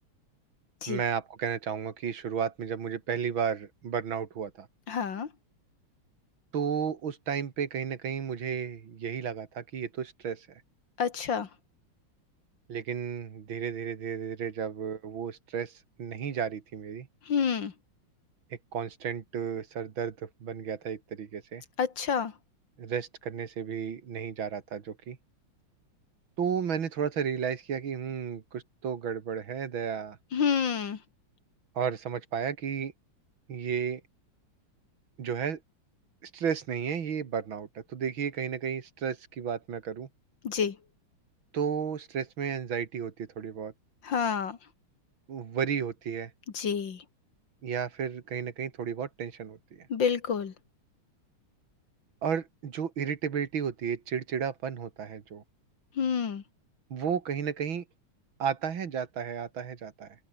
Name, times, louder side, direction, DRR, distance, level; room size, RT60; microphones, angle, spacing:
voice 1, 0.9-4.7 6.5-10.5 12.7-15.7 16.0-17.1 18.5-21.6 22.8-25.2 26.4-30.2 31.8-32.9 33.5-34.0 35.2-35.6 36.2-40.1 41.5-43.7 45.3-46.3 47.6-49.9 52.2-55.4 56.9-57.8 58.4-60.2, right 7 dB, 65° right, 2.6 m, -33 dB
voice 2, 4.9-5.3 11.0-11.5 17.3-17.7 21.8-22.3 30.3-31.0 40.4-40.8 44.0-44.6 46.5-47.0 49.9-50.5 56.0-56.4, left 7 dB, 60° left, 2.4 m, -28 dB
open air
omnidirectional pair, 2.4 m